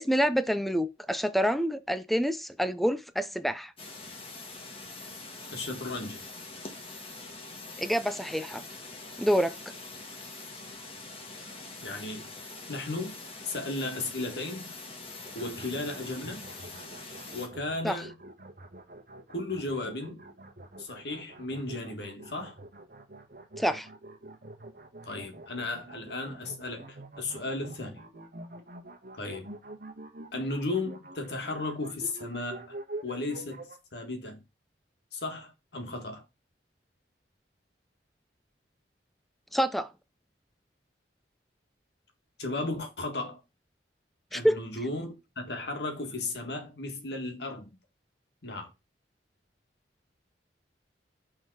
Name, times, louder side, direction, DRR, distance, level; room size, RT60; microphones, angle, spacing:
voice 1, 0.0-3.7 7.8-8.6 9.2-9.5 17.8-18.0 23.6-23.9 39.5-39.9 44.3-44.6, equal, ahead, 0.4 m, -27 dB
sound 1, 3.8-17.5, left 3 dB, 30° left, 1.5 m, -44 dB
voice 2, 5.5-6.2 11.8-12.3 12.7-13.2 13.4-14.7 15.3-16.4 17.3-18.2 19.3-20.2 20.8-22.6 25.0-28.0 29.2-29.5 30.3-32.8 33.0-34.4 35.1-36.2 42.4-43.4 44.3-47.7 48.4-48.7, left 2 dB, 65° left, 1.7 m, -35 dB
sound 2, 15.2-33.8, right 2 dB, 55° right, 1.3 m, -46 dB
6.3 x 3.9 x 4.8 m
head